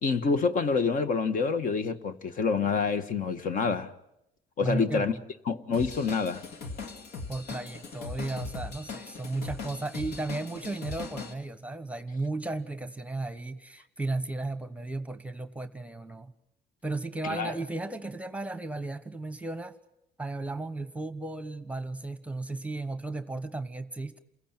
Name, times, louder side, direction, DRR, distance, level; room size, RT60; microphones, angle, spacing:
voice 1, 0.0-3.9 4.6-5.1 5.5-6.4 17.2-17.5, left 5 dB, 50° left, 1.5 m, -27 dB
voice 2, 4.6-5.2 7.3-16.3 16.8-19.7 20.2-24.2, right 2 dB, 10° right, 1.2 m, -35 dB
Drum kit / Drum, 5.7-11.3, left 4 dB, 75° left, 2.2 m, -40 dB
28.5 x 16.0 x 9.1 m
cardioid pair, 110°, 17 cm